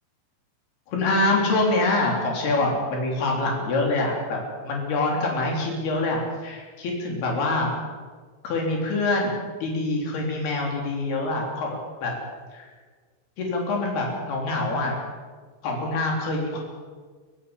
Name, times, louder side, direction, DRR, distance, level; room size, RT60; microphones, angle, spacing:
voice 1, 0.9-7.7 8.4-11.7 12.0-12.1 12.5-12.7 13.4-15.0 15.6-16.6, left 2 dB, 60° left, 0 dB, 5.7 m, -25 dB
24.5 x 14.5 x 7.4 m, 1.5 s
omnidirectional pair, 5.1 m